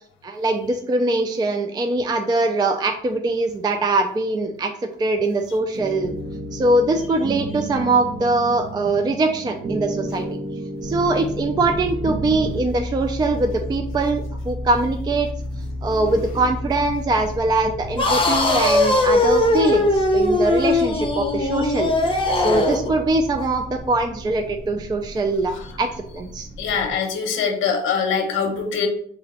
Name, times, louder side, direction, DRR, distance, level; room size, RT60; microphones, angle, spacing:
voice 1, 0.2-4.7 5.0-6.1 6.5-10.3 10.8-15.3 15.8-21.9 22.3-26.5, right 2 dB, 20° right, 5 dB, 0.3 m, -22 dB
sound 1, 5.7-12.5, right 1 dB, 55° right, 0.9 m, -31 dB
sound 2, 10.8-27.0, equal, 80° right, 1.0 m, -33 dB
sound 3, 18.0-22.9, left 2 dB, 25° left, 0.7 m, -19 dB
voice 2, 26.6-28.9, left 6 dB, 85° left, 3 dB, 0.7 m, -23 dB
2.9 x 2.6 x 4.2 m, 0.63 s
cardioid pair, 90°, 20 cm